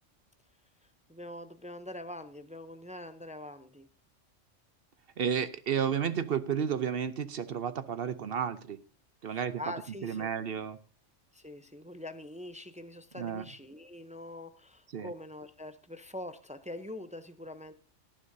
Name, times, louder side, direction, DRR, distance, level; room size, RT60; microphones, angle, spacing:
voice 1, 1.1-3.9 9.2-10.3 11.3-17.7, left 1 dB, 10° right, 10 dB, 0.4 m, -44 dB
voice 2, 5.2-8.8 9.2-9.6 10.0-10.8 13.2-13.5 14.9-15.1, right 7 dB, 55° right, 13 dB, 0.8 m, -32 dB
17.5 x 9.9 x 2.7 m, 0.37 s
omnidirectional pair, 1.3 m